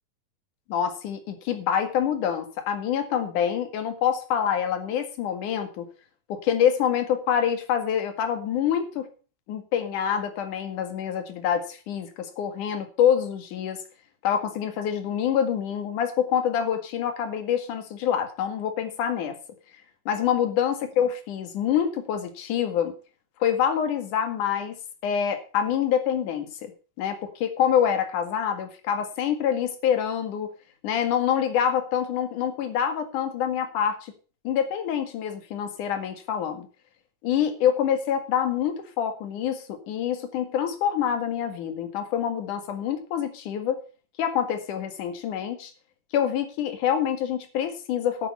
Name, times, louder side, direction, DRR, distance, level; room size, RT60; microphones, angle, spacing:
voice 1, 0.7-5.9 6.3-9.1 9.5-13.8 14.2-19.4 20.1-22.9 23.4-24.8 25.0-26.7 27.0-30.5 30.8-34.1 34.4-36.7 37.2-43.8 44.2-45.7 46.1-48.3, left 9 dB, 70° left, 7 dB, 3.3 m, -26 dB
11.5 x 9.0 x 5.6 m, 0.36 s
omnidirectional pair, 3.9 m